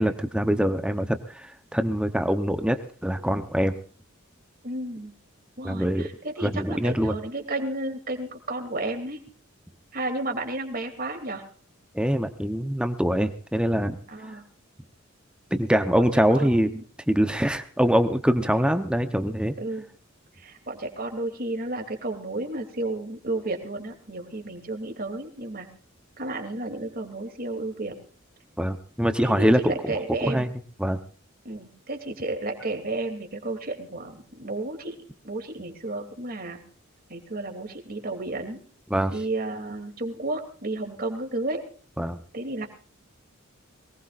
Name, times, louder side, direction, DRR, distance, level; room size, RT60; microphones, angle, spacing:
voice 1, 0.0-3.8 5.6-6.1 6.4-7.1 11.9-14.0 15.5-16.7 17.1-19.5 28.6-29.9 30.2-30.5 30.8-31.0 38.9-39.1 42.0-42.2, equal, 5° right, 8 dB, 0.8 m, -24 dB
voice 2, 4.6-5.1 5.6-9.2 9.9-11.4 14.1-14.4 16.3-16.8 18.4-18.5 19.6-19.9 20.4-25.7 26.2-27.9 29.2-30.4 31.4-35.0 35.2-36.6 37.1-38.6 39.1-41.6 42.3-42.7, right 2 dB, 45° right, 4 dB, 2.9 m, -32 dB
22.5 x 19.5 x 2.5 m, 0.42 s
head